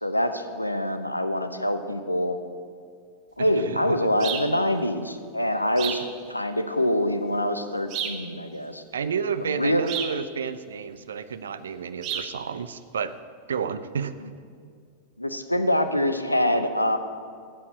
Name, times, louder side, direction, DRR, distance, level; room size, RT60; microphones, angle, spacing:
voice 1, 0.0-2.4 3.4-6.0 6.3-8.8 9.4-9.9 15.2-17.0, left 1 dB, 85° left, 9 dB, 0.9 m, -25 dB
voice 2, 3.4-4.0 5.8-5.9 8.9-13.2 13.5-14.2, right 6 dB, 65° right, 13 dB, 0.6 m, -31 dB
sound 1, 4.2-4.5 5.8-6.1 7.9-8.3 9.9-10.2 12.0-12.3, right 8 dB, 40° right, 1.2 m, -31 dB
13.5 x 8.6 x 7.9 m, 2.2 s
figure-of-eight pair, 90°, 0 cm